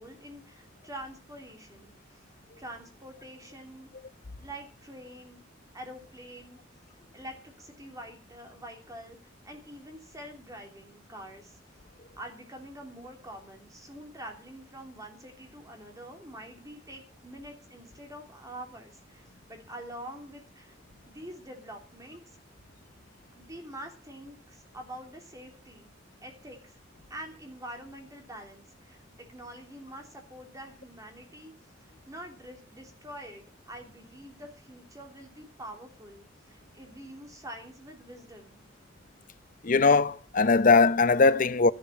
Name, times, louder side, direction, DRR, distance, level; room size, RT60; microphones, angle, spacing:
voice 1, 0.0-2.3 2.6-3.9 4.4-5.4 5.7-6.6 7.1-11.6 12.2-20.8 21.1-22.4 23.3-25.9 26.2-26.8 27.1-29.0 29.3-31.5 31.8-38.6, right 1 dB, 15° right, 3.1 m, -45 dB
voice 2, 39.6-41.7, left 4 dB, 40° left, 0.6 m, -20 dB
13.5 x 11.5 x 5.8 m
head